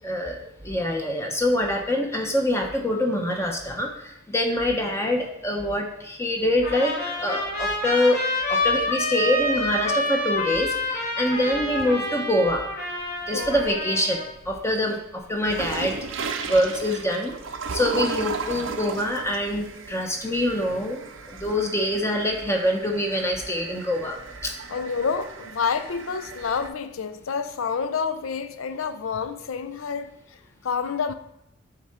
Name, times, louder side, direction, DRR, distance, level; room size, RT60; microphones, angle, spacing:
voice 1, 0.0-8.2 8.5-12.6 13.3-17.3 17.7-24.2 24.4-24.5, left 1 dB, 15° left, 0.7 m, -25 dB
Trumpet, 6.6-14.3, left 1 dB, 55° left, 2.5 m, -28 dB
sound 1, 13.0-13.9 14.4-26.7, right 5 dB, 70° right, 0.6 m, -36 dB
voice 2, 13.3-13.7 24.7-30.1 30.6-31.1, left 5 dB, 80° left, 0.5 m, -28 dB
8.0 x 3.7 x 4.3 m
head